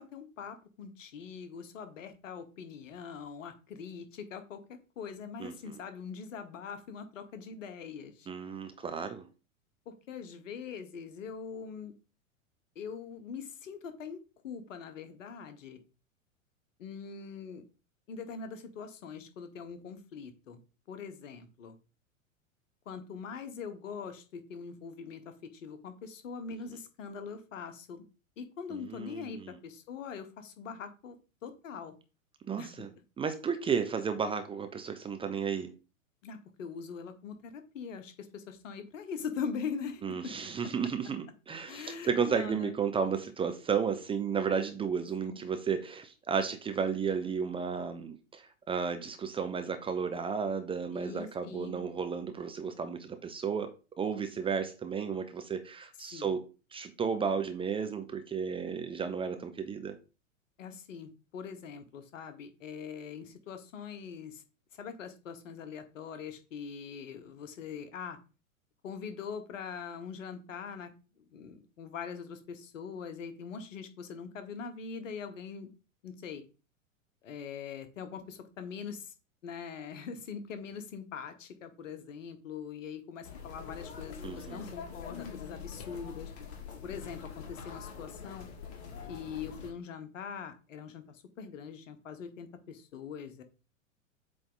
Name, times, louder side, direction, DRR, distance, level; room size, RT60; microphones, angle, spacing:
voice 1, 0.0-4.6 5.0-8.3 9.9-11.9 12.7-15.8 16.8-17.6 18.1-20.6 20.9-21.8 22.8-28.0 28.4-31.2 31.4-31.9 32.6-32.7 36.2-40.5 41.7-42.8 45.2-45.4 50.9-51.8 56.1-56.3 60.6-64.4 64.8-68.2 68.8-70.9 71.3-75.7 76.0-76.4 77.2-79.1 79.4-86.3 86.8-88.5 89.1-93.4, left 6 dB, 65° left, 1.4 m, -42 dB
voice 2, 5.4-5.8 8.3-9.3 28.7-29.5 32.5-32.9 33.2-35.7 40.0-53.7 54.0-56.4 56.7-59.9 84.2-84.7, right 6 dB, 15° right, 0.6 m, -33 dB
sound 1, 83.2-89.7, left 6 dB, 50° left, 2.1 m, -44 dB
8.0 x 3.5 x 4.0 m
figure-of-eight pair, 100°, 41 cm